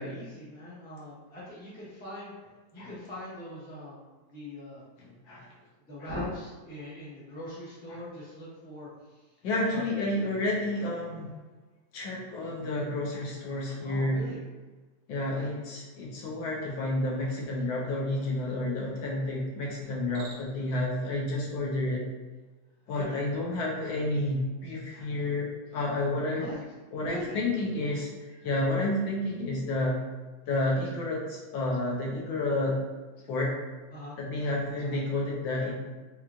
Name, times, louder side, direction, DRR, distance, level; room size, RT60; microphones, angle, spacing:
voice 1, 0.0-2.3 2.7-4.0 4.3-4.8 5.9-9.3 9.7-9.9 13.8-14.4 23.0-23.2 26.4-26.6 27.0-27.4 33.9-34.2, left 1 dB, 10° left, -10 dB, 0.6 m, -41 dB
voice 2, 5.0-5.5 9.4-11.3 11.9-14.2 15.1-22.1 22.9-26.5 26.9-30.0 30.5-32.8 33.2-33.5 34.2-35.7, left 2 dB, 70° left, -3 dB, 1.4 m, -30 dB
Cricket, 19.9-20.7, right 2 dB, 65° right, 1.4 m, -49 dB
4.4 x 2.4 x 2.4 m, 1.3 s
omnidirectional pair, 2.4 m